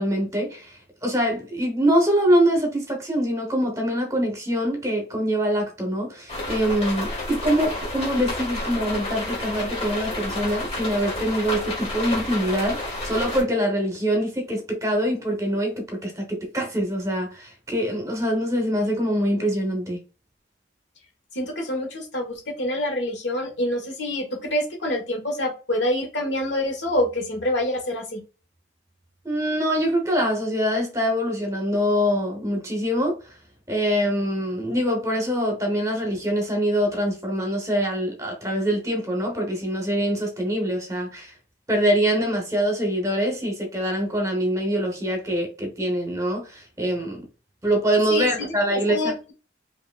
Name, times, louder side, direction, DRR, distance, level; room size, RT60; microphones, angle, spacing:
voice 1, 0.0-20.0 29.2-33.2 33.7-41.3 41.7-47.3 47.6-49.1, equal, 15° right, 1.0 m, -24 dB
sound 1, 6.3-13.4, left 2 dB, 30° left, 1.6 m, -30 dB
voice 2, 21.3-28.2 48.1-48.5 48.9-49.3, left 1 dB, 75° left, 1.4 m, -26 dB
4.8 x 2.8 x 2.4 m
head